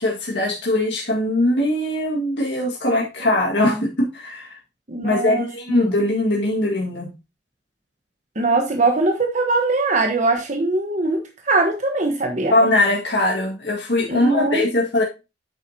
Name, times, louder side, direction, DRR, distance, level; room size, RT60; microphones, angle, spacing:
voice 1, 0.0-4.6 5.0-7.1 12.5-15.0, left 1 dB, 80° left, -2 dB, 1.9 m, -21 dB
voice 2, 4.9-5.8 8.4-12.5 14.1-14.6, right 3 dB, 45° right, 4 dB, 1.2 m, -21 dB
9.0 x 7.3 x 2.8 m, 0.26 s
head